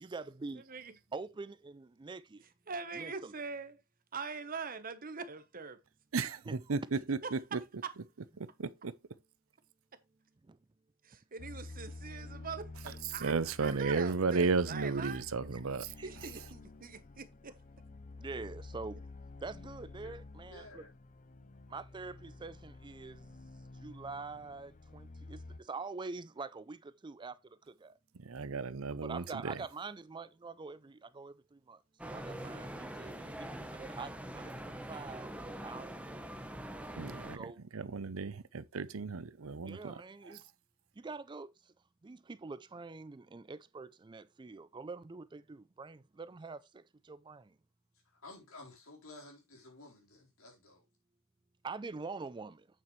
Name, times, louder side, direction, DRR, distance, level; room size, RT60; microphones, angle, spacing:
voice 1, 0.0-0.6 1.1-2.4 2.9-3.3 6.2-6.8 10.4-10.6 15.5-15.6 16.0-16.4 18.2-19.0 19.4-20.8 21.7-28.0 29.0-36.0 37.0-37.6 39.6-40.4 41.0-41.7 42.0-47.6 51.6-52.7, right 4 dB, 20° right, 0.4 m, -45 dB
voice 2, 2.7-3.7 4.1-5.8 11.0-13.3 13.6-15.2 16.0-17.5, right 5 dB, 40° right, 1.1 m, -42 dB
voice 3, 6.1-7.6 8.6-8.9 13.1-15.9 28.2-29.6 37.0-40.0, right 4 dB, 75° right, 0.7 m, -34 dB
sound 1, 11.4-25.6, left 2 dB, 35° left, 0.5 m, -50 dB
voice 4, 20.5-20.9 48.0-50.8, left 2 dB, 75° left, 4.2 m, -53 dB
sound 2, 32.0-37.4, right 1 dB, 5° right, 0.9 m, -44 dB
8.6 x 7.4 x 3.2 m
head